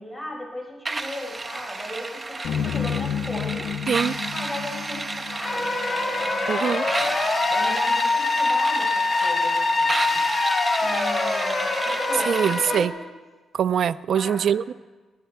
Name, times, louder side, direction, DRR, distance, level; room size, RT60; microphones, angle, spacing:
voice 1, 0.0-3.7 4.3-7.1 7.5-10.2 10.8-13.0 14.1-14.7, left 1 dB, ahead, -2 dB, 5.1 m, -37 dB
sound 1, 0.9-12.9, right 2 dB, 25° right, 1.0 m, -32 dB
sound 2, 2.4-6.8, left 8 dB, 80° left, 0.5 m, -31 dB
sound 3, 5.4-12.8, left 3 dB, 30° left, 2.7 m, -24 dB
voice 2, 6.5-6.8 12.3-12.9 13.5-14.7, right 8 dB, 65° right, 18 dB, 0.4 m, -23 dB
28.0 x 10.5 x 4.5 m, 1.3 s
cardioid pair, 105°, 0 cm